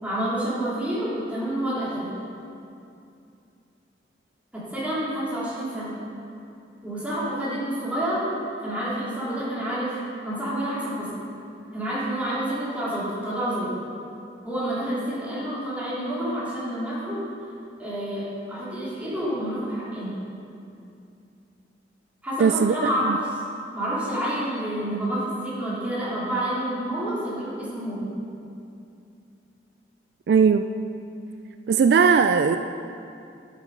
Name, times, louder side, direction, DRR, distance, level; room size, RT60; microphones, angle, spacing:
voice 1, 0.0-2.1 4.5-6.0 6.8-8.3 8.6-9.9 10.2-11.1 11.7-13.7 14.4-17.2 17.8-20.1 22.2-23.2 23.7-28.1, right 1 dB, 10° right, -9 dB, 3.0 m, -28 dB
voice 2, 22.4-22.7 23.1-23.2 30.3-30.7 31.7-32.6, right 6 dB, 65° right, 9 dB, 0.3 m, -18 dB
11.5 x 7.4 x 5.4 m, 2.6 s
head